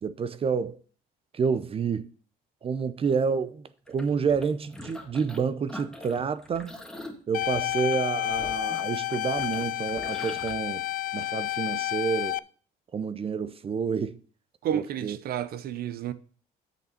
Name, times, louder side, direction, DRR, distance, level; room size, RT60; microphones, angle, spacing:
voice 1, 0.0-0.8 1.3-2.1 2.6-6.7 7.3-10.8 11.1-12.4 12.9-14.2 14.7-15.2, right 6 dB, 35° right, 0.7 m, -29 dB
sound 1, 3.9-5.4 5.7-10.5, left 1 dB, 5° left, 1.8 m, -43 dB
sound 2, 7.3-12.4, left 16 dB, 55° left, 0.4 m, -30 dB
voice 2, 14.6-16.1, right 10 dB, 65° right, 0.8 m, -31 dB
8.1 x 6.8 x 4.3 m
cardioid pair, 110°, 17 cm